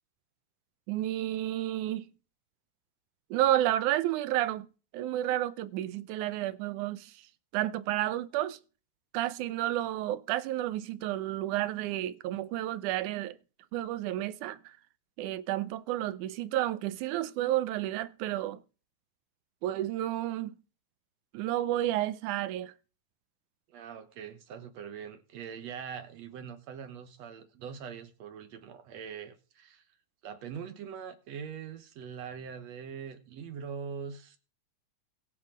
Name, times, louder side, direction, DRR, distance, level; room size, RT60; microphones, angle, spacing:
voice 1, 0.9-2.1 3.3-4.7 4.9-7.1 7.5-8.6 9.1-13.4 13.7-14.7 15.2-18.6 19.6-20.6 21.3-22.7, right 14 dB, 85° right, 2.2 m, -31 dB
voice 2, 23.7-29.8 30.2-34.4, right 7 dB, 65° right, 2.2 m, -42 dB
21.5 x 7.3 x 3.8 m
omnidirectional pair, 3.4 m